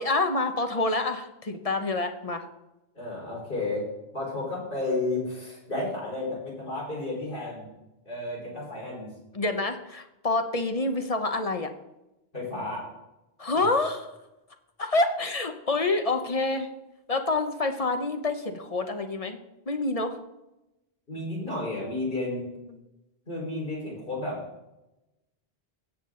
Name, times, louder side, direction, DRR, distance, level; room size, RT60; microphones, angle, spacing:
voice 1, 0.0-2.5 9.3-11.7 13.4-14.1 14.8-16.7 17.1-19.4 19.7-20.2 22.7-22.8, left 2 dB, 35° left, 6 dB, 0.9 m, -27 dB
voice 2, 2.9-3.9 4.1-7.7 8.0-9.1 12.3-12.9 13.5-13.7 21.1-22.5 23.3-24.4, left 2 dB, 60° left, -5 dB, 4.9 m, -32 dB
16.5 x 7.4 x 3.8 m, 0.95 s
omnidirectional pair, 1.0 m